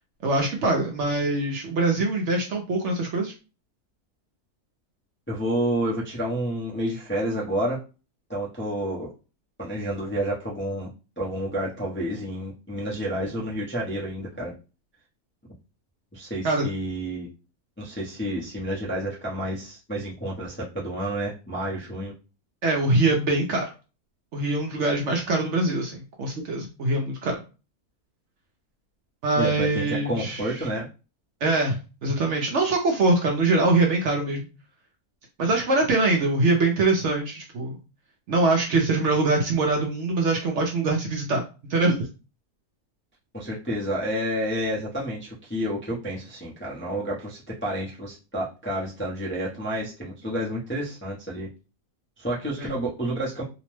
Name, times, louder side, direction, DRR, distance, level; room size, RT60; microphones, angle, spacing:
voice 1, 0.2-3.3 16.4-16.7 22.6-23.7 24.3-27.4 29.2-30.4 31.4-34.4 35.4-37.7 38.3-41.4 41.7-42.1 52.6-52.8, right 2 dB, 65° right, 1 dB, 0.8 m, -23 dB
voice 2, 5.3-7.8 8.3-9.1 9.6-10.9 11.2-14.5 16.1-17.3 17.8-22.1 29.3-30.9 43.3-51.5 52.2-53.4, right 1 dB, 15° left, -6 dB, 0.4 m, -30 dB
2.8 x 2.0 x 3.1 m, 0.31 s
omnidirectional pair, 1.6 m